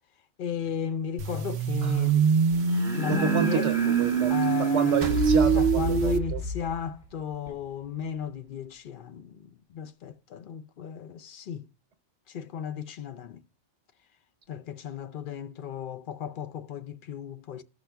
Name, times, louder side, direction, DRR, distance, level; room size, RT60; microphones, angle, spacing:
voice 1, 0.4-2.3 2.9-3.7 4.3-5.0 5.5-11.7 12.3-13.4 14.5-17.6, left 8 dB, 55° left, 0.6 m, -35 dB
sound 1, 0.6-0.7 2.5-5.4 7.5-7.6, right 1 dB, ahead, 2.1 m, -36 dB
sound 2, 1.2-6.2, right 7 dB, 70° right, 0.9 m, -24 dB
voice 2, 3.1-6.4, right 7 dB, 90° right, 1.2 m, -30 dB
sound 3, 5.0-7.3, left 2 dB, 40° right, 1.1 m, -30 dB
14.0 x 5.8 x 2.2 m
omnidirectional pair, 1.2 m